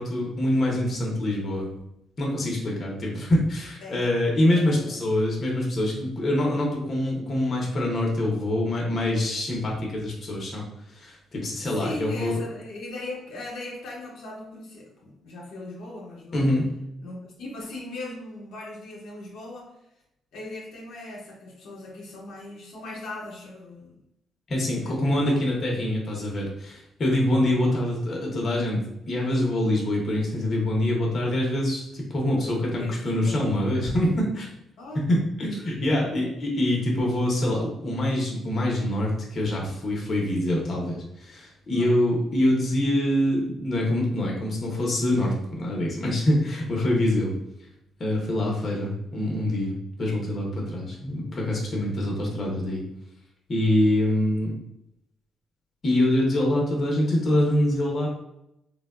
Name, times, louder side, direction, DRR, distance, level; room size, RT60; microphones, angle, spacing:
voice 1, 0.0-1.7 2.2-10.6 10.9-12.3 16.3-16.6 24.5-28.8 29.1-34.5 34.9-47.3 48.0-52.8 53.5-54.5 55.8-58.1, left 1 dB, 45° left, -2 dB, 0.8 m, -25 dB
voice 2, 4.5-5.0 11.8-16.4 17.0-19.7 20.3-23.9 24.8-25.4 25.7-25.9 32.6-33.4 34.8-35.1 36.0-36.3 41.7-41.9, left 2 dB, 80° left, -3 dB, 0.8 m, -39 dB
3.3 x 2.2 x 2.3 m, 0.81 s
cardioid pair, 90°, 0 cm